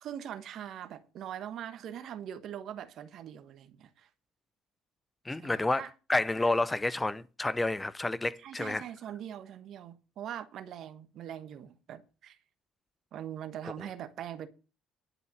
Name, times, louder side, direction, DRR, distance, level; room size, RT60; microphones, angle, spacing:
voice 1, 0.0-4.1 5.4-5.9 8.4-12.4 13.1-14.5, right 10 dB, 60° right, 1.3 m, -42 dB
voice 2, 5.2-8.8, left 2 dB, 15° left, 0.6 m, -30 dB
11.0 x 5.5 x 8.8 m
hypercardioid pair, 65°, 0 cm